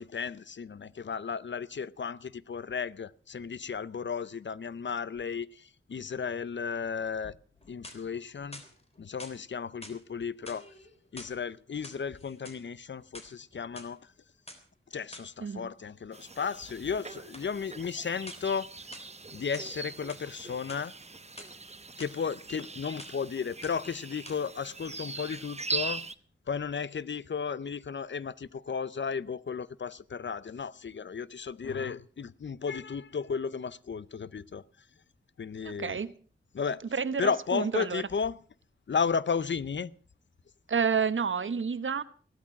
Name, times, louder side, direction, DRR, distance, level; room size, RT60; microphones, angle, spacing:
voice 1, 0.0-7.3 7.7-8.6 9.0-10.6 11.1-14.0 14.9-18.7 19.3-20.9 22.0-26.0 26.5-34.6 35.4-36.0 36.5-36.8 37.2-38.4 38.9-39.9, left 6 dB, 60° left, 0.7 m, -34 dB
sound 1, 7.6-8.2 8.5-9.4 9.8-10.0 10.4-11.4 11.7-12.6 13.0-13.9 14.5-14.6 15.1-15.3 17.3-17.5 18.3-18.6 18.9-19.7 20.1-20.3 20.6-21.5 22.0-22.1 22.5-22.7 23.0-23.3 23.6-23.9 24.2-24.4, left 1 dB, 30° left, 3.6 m, -48 dB
sound 2, 16.1-26.2, right 3 dB, 30° right, 0.9 m, -41 dB
voice 2, 35.6-36.1 36.9-38.0 40.7-42.0, right 6 dB, 70° right, 1.1 m, -30 dB
16.0 x 12.5 x 5.9 m
cardioid pair, 55°, 21 cm